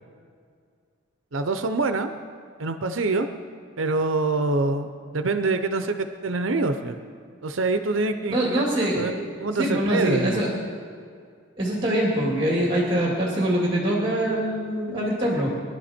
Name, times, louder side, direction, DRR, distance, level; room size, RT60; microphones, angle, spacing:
voice 1, 1.3-2.1 2.6-3.3 3.8-7.0 7.4-9.1 9.4-10.5, right 3 dB, 75° right, 7 dB, 0.7 m, -25 dB
voice 2, 8.3-9.1 9.6-10.5 11.6-15.5, right 1 dB, 25° right, -3 dB, 2.5 m, -23 dB
22.5 x 11.5 x 4.4 m, 2.2 s
head